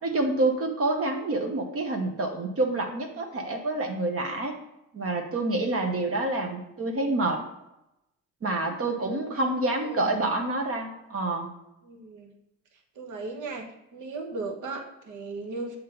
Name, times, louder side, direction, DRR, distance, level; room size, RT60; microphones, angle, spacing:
voice 1, 0.0-4.5 4.9-7.4 8.4-11.5, right 2 dB, 45° right, 2 dB, 1.0 m, -27 dB
voice 2, 9.3-10.1 11.8-12.3 12.9-15.8, right 3 dB, 70° right, 1 dB, 1.2 m, -37 dB
7.3 x 3.0 x 5.1 m, 0.88 s
cardioid pair, 80°, 31 cm